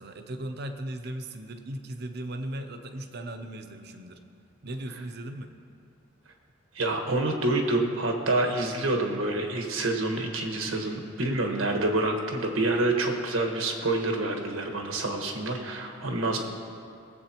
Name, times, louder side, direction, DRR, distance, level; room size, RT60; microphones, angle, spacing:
voice 1, 0.0-4.2 4.6-5.5, right 1 dB, 50° right, 7 dB, 0.7 m, -37 dB
voice 2, 6.7-16.4, right 2 dB, 85° right, 2 dB, 1.4 m, -27 dB
20.5 x 8.0 x 2.9 m, 2.4 s
head